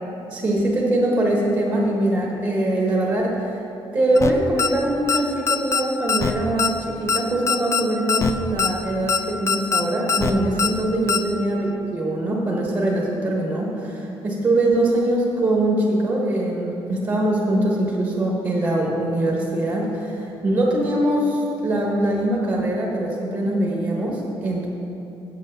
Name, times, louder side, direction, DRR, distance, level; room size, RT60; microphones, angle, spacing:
voice 1, 0.3-3.6 3.9-24.7, right 1 dB, 35° right, -3 dB, 1.4 m, -22 dB
sound 1, 4.2-4.3 4.6-4.7 5.1-5.2 5.5-5.8 6.1-6.3 6.6-6.7 7.1-7.2 7.5-7.8 8.1-8.3 8.6-8.7 9.1-9.2 9.5-9.8 10.1-10.3 10.6-10.7 11.1-11.2, left 5 dB, 30° left, 0.5 m, -21 dB
8.4 x 7.7 x 5.6 m, 3.0 s
cardioid pair, 135°, 10 cm